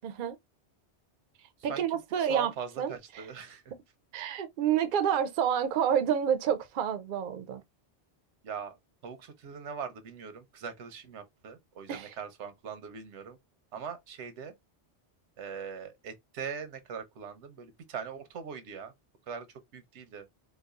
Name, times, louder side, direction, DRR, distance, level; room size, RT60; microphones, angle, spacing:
voice 1, 0.0-0.4 1.6-2.5 2.8-3.3 4.1-7.6 11.9-12.1, right 8 dB, 55° right, 0.6 m, -29 dB
voice 2, 2.2-3.6 8.4-8.8 9.0-13.4 13.7-14.5 15.4-18.9 19.3-19.5 19.7-20.3, right 6 dB, 85° right, 1.0 m, -41 dB
4.0 x 2.3 x 2.3 m
omnidirectional pair, 1.1 m